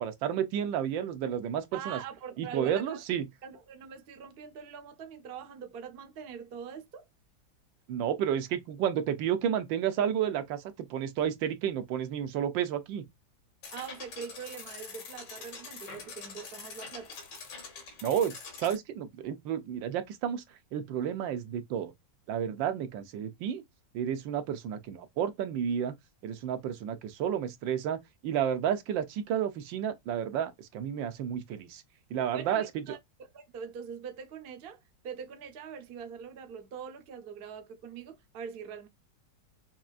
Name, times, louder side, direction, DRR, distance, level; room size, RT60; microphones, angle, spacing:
voice 1, 0.0-2.0 2.4-3.3 7.9-10.6 10.9-13.0 18.0-20.4 20.7-21.9 22.3-23.6 23.9-25.9 26.2-28.0 28.2-31.8 32.1-32.6, right 9 dB, 85° right, 1.4 m, -31 dB
voice 2, 1.7-3.0 3.4-7.1 13.7-17.2 32.3-33.0 33.3-38.9, right 7 dB, 50° right, 0.7 m, -43 dB
sound 1, 13.6-18.8, left 5 dB, 70° left, 1.7 m, -45 dB
5.8 x 2.5 x 2.4 m
omnidirectional pair, 2.0 m